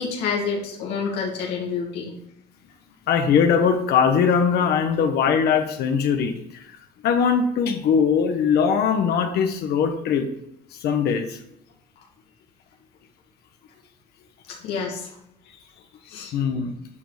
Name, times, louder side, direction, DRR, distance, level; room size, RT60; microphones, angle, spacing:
voice 1, 0.0-2.1 14.6-15.1 16.1-16.4, left 5 dB, 90° left, -1 dB, 2.2 m, -28 dB
voice 2, 3.1-6.6 7.0-10.3 10.7-11.4 16.3-16.8, left 6 dB, 70° left, 5 dB, 1.2 m, -21 dB
9.8 x 5.3 x 5.0 m, 0.77 s
cardioid pair, 110°, 17 cm